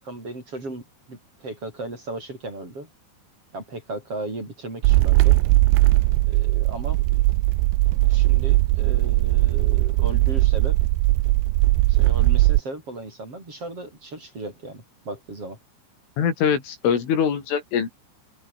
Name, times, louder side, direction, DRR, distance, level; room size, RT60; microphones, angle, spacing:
voice 1, 0.0-2.9 3.5-5.4 6.3-7.2 8.1-10.8 11.9-15.6, right 2 dB, 30° right, 8.1 m, -36 dB
sound 1, 4.8-12.6, right 20 dB, 80° right, 2.6 m, -19 dB
voice 2, 16.2-17.9, left 7 dB, 75° left, 6.5 m, -23 dB
open air
omnidirectional pair, 5.7 m